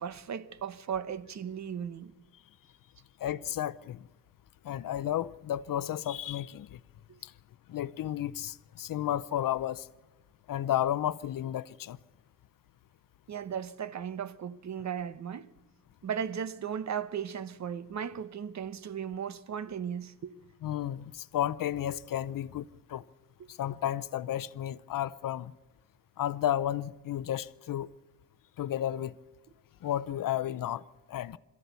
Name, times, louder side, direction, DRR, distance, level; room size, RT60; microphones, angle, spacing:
voice 1, 0.0-2.1 7.1-7.2 13.3-15.5 16.0-20.3, right 8 dB, 55° right, 0.9 m, -36 dB
voice 2, 3.2-4.1 4.6-6.8 7.2-7.3 7.7-9.9 10.5-12.0 20.6-23.0 23.5-25.5 26.2-27.9 28.6-29.1 29.8-31.4, left 11 dB, 70° left, 0.6 m, -32 dB
22.0 x 14.0 x 8.2 m
wide cardioid pair, 145°, 34 cm